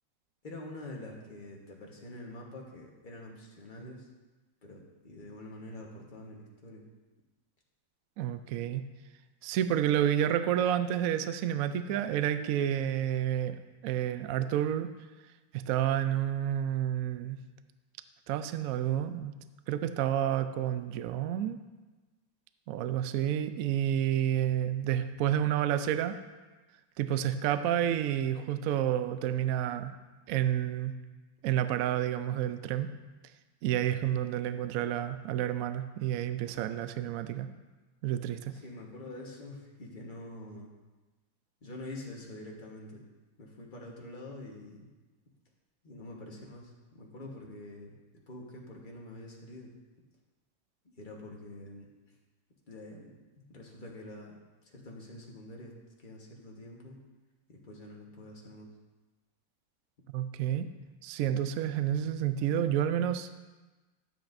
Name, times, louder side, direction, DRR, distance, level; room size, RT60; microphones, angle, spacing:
voice 1, 0.4-4.1 4.6-6.8 38.5-40.7 41.6-43.0 43.4-44.9 45.8-48.0 48.3-49.7 51.0-51.9 52.7-53.2 53.5-57.0 57.5-58.7, left 1 dB, 30° left, -2 dB, 1.2 m, -46 dB
voice 2, 8.2-8.9 9.4-13.6 13.8-14.9 15.5-17.4 18.3-19.3 19.7-21.6 22.7-26.2 27.0-30.0 30.3-30.9 31.4-32.9 33.6-37.5 38.0-38.5 60.1-60.7 61.0-63.4, right 11 dB, 90° right, 10 dB, 0.7 m, -30 dB
12.0 x 7.9 x 2.6 m, 1.2 s
omnidirectional pair, 2.0 m